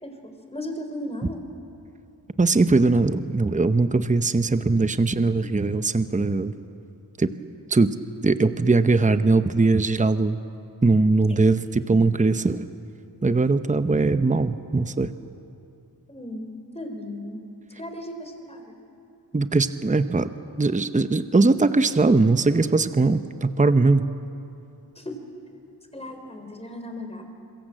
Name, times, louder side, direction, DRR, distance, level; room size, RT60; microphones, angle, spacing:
voice 1, 0.0-1.4 16.1-16.5 16.7-17.4 17.8-18.7 25.0-25.2 25.9-27.2, left 1 dB, 15° left, 4 dB, 3.9 m, -36 dB
voice 2, 2.4-6.5 7.2-7.3 7.7-7.9 8.2-10.4 10.8-12.7 13.2-15.1 19.3-20.3 20.6-24.1, right 3 dB, 20° right, 11 dB, 0.8 m, -20 dB
26.0 x 23.0 x 7.7 m, 2.7 s
wide cardioid pair, 75°, 41 cm